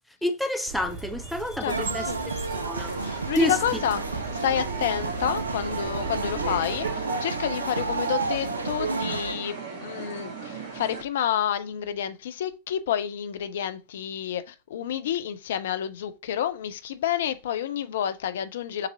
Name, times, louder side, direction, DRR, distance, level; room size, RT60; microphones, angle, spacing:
voice 1, 0.2-2.1 2.5-2.9 3.3-3.8, left 2 dB, ahead, 0.6 m, -28 dB
sound 1, 0.7-6.9, right 4 dB, 30° right, 2.2 m, -39 dB
voice 2, 1.6-2.2 3.0-18.9, left 10 dB, 60° left, 0.5 m, -29 dB
sound 2, 1.7-9.3, right 4 dB, 75° right, 0.4 m, -31 dB
sound 3, 2.7-11.0, right 4 dB, 60° right, 1.6 m, -36 dB
6.7 x 2.7 x 2.7 m
figure-of-eight pair, 90°, 0 cm